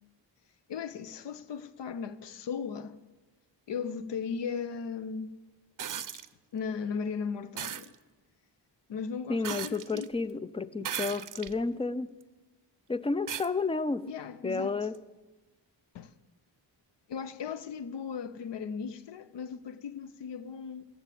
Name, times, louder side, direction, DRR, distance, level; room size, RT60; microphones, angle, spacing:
voice 1, 0.7-3.0 3.7-5.3 6.1-6.2 6.5-7.9 8.9-10.1 10.3-10.4 14.1-14.8 15.9-16.1 17.1-20.8, left 6 dB, 70° left, 0.8 m, -37 dB
sound 1, 5.8-6.3 7.6-7.9 9.4-10.1 10.8-11.6 12.2-12.3 13.3-13.5 14.9-15.0, right 9 dB, 45° right, 0.6 m, -37 dB
voice 2, 9.3-12.1 12.9-14.1 14.4-15.0, left 3 dB, 15° left, 0.3 m, -31 dB
15.5 x 7.1 x 8.4 m
wide cardioid pair, 115°, 43 cm